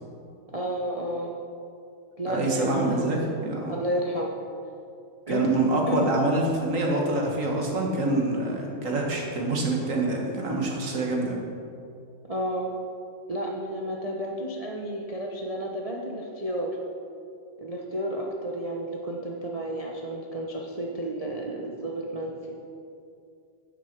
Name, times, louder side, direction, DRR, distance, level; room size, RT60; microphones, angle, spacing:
voice 1, 0.5-1.3 2.2-3.2 3.7-4.3 5.3-5.4 5.9-6.1 12.3-12.7 13.3-16.7 17.6-22.3, equal, 60° right, -1 dB, 0.3 m, -31 dB
voice 2, 2.3-3.7 5.3-11.4, right 2 dB, 40° right, -1 dB, 1.8 m, -26 dB
9.5 x 7.4 x 6.1 m, 2.5 s
omnidirectional pair, 2.3 m